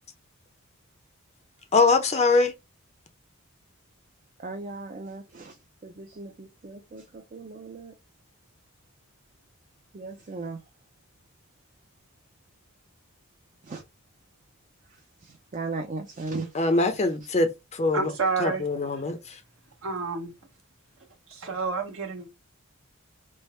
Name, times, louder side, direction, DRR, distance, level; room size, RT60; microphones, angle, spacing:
voice 1, 1.7-2.5 16.5-18.1 18.4-19.4, left 3 dB, 30° left, 0.5 m, -23 dB
voice 2, 4.4-7.9 9.9-10.6 13.6-13.8 14.9-16.7 17.0-17.1, right 3 dB, 35° right, 0.5 m, -37 dB
voice 3, 17.9-18.6 19.8-20.3 21.3-22.3, right 4 dB, 65° right, 1.1 m, -29 dB
3.3 x 2.1 x 4.2 m
head